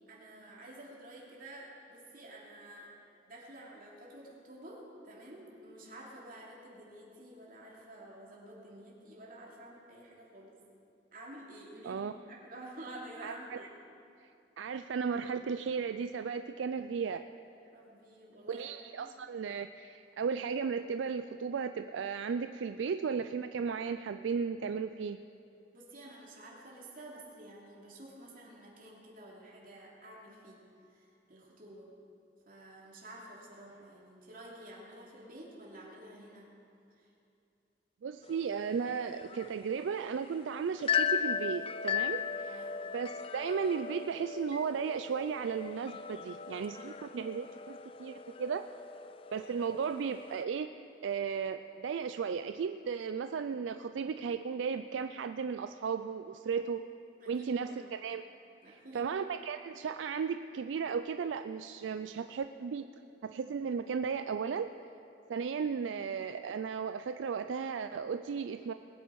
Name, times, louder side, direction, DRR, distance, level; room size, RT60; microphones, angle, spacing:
voice 1, 0.1-2.9 3.2-10.6 11.1-12.0 12.3-13.7 17.5-19.1 25.7-30.6 30.9-31.9 32.5-36.5 36.9-37.1 42.4-42.8 57.2-57.9 58.6-59.1, right 1 dB, 50° right, -4 dB, 2.8 m, -50 dB
voice 2, 13.2-13.6 14.6-17.2 18.5-25.2 38.0-42.6 42.9-48.6 49.3-56.9 57.3-58.2 58.9-62.8 63.2-64.7 65.3-68.7, right 6 dB, 80° right, 9 dB, 0.4 m, -35 dB
sound 1, 38.2-50.4, left 7 dB, 30° left, 0.3 m, -37 dB
20.0 x 9.1 x 4.7 m, 2.6 s
head